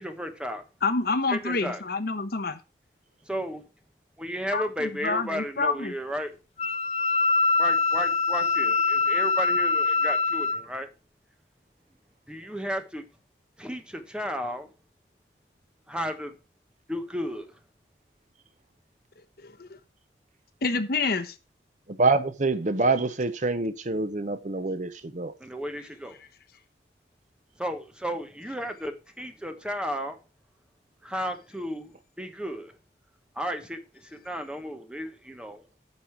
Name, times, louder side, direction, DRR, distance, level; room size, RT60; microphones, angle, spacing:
voice 1, 0.0-0.6 1.3-1.8 3.3-3.6 4.2-6.3 7.6-10.9 12.3-13.0 13.6-14.7 15.9-16.3 16.9-17.5 25.4-26.1 27.6-30.2 31.0-32.7 33.4-35.6, equal, 5° right, 1.1 m, -33 dB
voice 2, 0.8-2.6 4.5-5.9 19.4-19.8 20.6-21.3, left 3 dB, 55° left, 1.0 m, -28 dB
Wind instrument woodwind instrument, 6.6-10.6, left 4 dB, 35° left, 0.6 m, -24 dB
voice 3, 21.9-25.3, right 3 dB, 40° right, 0.8 m, -26 dB
9.5 x 5.4 x 5.8 m
head